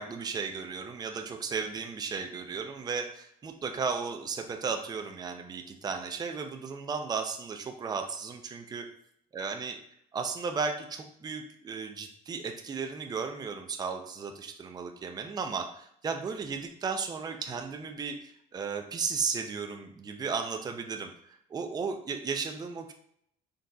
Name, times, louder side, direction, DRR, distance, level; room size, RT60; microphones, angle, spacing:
voice 1, 0.0-8.8 9.3-9.8 10.1-21.1 21.5-22.9, right 5 dB, 25° right, 4 dB, 0.4 m, -35 dB
3.9 x 3.8 x 2.3 m, 0.68 s
cardioid pair, 110°, 17 cm